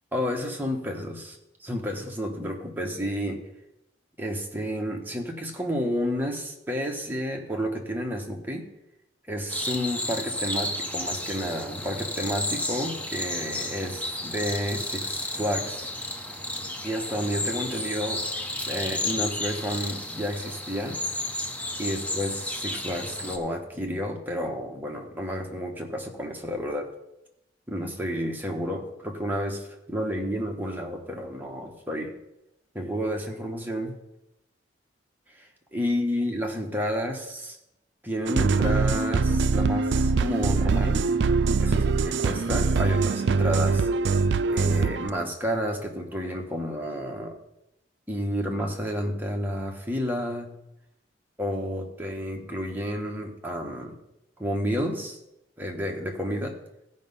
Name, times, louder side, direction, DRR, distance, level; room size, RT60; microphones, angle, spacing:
voice 1, 0.1-3.4 4.2-8.7 9.3-15.9 16.8-18.2 18.7-21.0 21.8-26.9 27.7-32.1 32.7-34.0 35.3-37.6 38.0-41.0 41.6-43.9 44.5-47.4 48.1-50.6 51.4-54.0 54.4-55.2 55.6-56.6, equal, 10° right, 1 dB, 1.2 m, -31 dB
sound 1, 9.5-23.4, left 1 dB, 10° left, 0.8 m, -32 dB
sound 2, 38.3-45.1, right 4 dB, 65° right, 0.4 m, -23 dB
15.0 x 5.4 x 5.5 m, 0.87 s
head